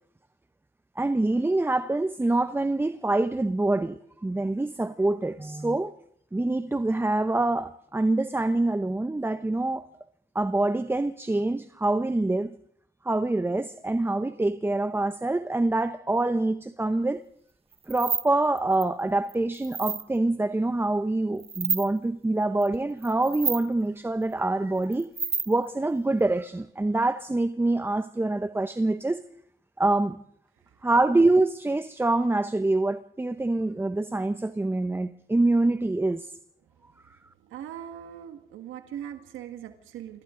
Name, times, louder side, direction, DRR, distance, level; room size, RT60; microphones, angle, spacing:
voice 1, 1.0-5.9 6.3-9.9 10.3-12.5 13.0-17.2 17.9-25.1 25.5-29.2 29.8-30.2 30.8-36.3, right 2 dB, 10° right, 0.8 m, -25 dB
sound 1, 17.7-18.3 18.6-18.8 19.3-20.0 21.4-21.9 22.6-22.8 23.0-23.7 24.8-25.7, right 5 dB, 30° right, 1.2 m, -29 dB
voice 2, 37.4-40.2, right 10 dB, 85° right, 1.8 m, -40 dB
27.0 x 26.0 x 3.8 m
cardioid pair, 90°, 20 cm